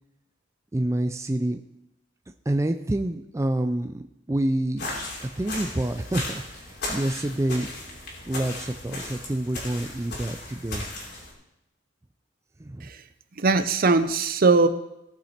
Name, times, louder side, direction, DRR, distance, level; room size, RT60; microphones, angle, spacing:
voice 1, 0.7-1.6 2.5-4.8 5.2-8.0 8.3-10.9 12.6-12.9, right 1 dB, 15° right, 7 dB, 0.4 m, -28 dB
sound 1, 4.8-11.3, left 2 dB, 60° left, 2.9 m, -36 dB
voice 2, 13.4-14.7, right 3 dB, 50° right, 11 dB, 0.7 m, -20 dB
17.0 x 5.8 x 4.3 m, 0.87 s
head